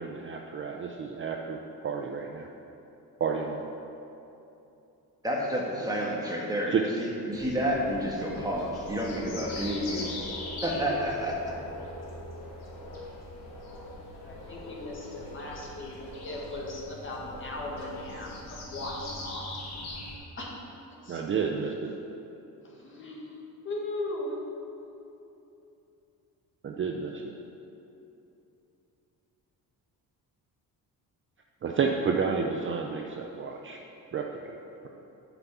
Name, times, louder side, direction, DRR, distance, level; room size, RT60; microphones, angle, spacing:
voice 1, 0.0-2.5 3.2-3.6 6.7-6.8 21.1-21.9 26.6-27.3 31.6-33.8 34.1-34.3, right 5 dB, 35° right, 2 dB, 0.5 m, -30 dB
voice 2, 5.2-10.3 10.6-11.4, equal, 10° right, -3 dB, 1.6 m, -30 dB
sound 1, 7.3-20.2, left 2 dB, 75° left, 2.4 m, -41 dB
voice 3, 14.2-16.0 16.2-19.5 20.4-20.5 21.0-21.2 22.6-23.4 23.6-24.4, left 1 dB, 30° left, -2 dB, 1.8 m, -38 dB
9.3 x 6.0 x 7.0 m, 2.9 s
cardioid pair, 145°, 38 cm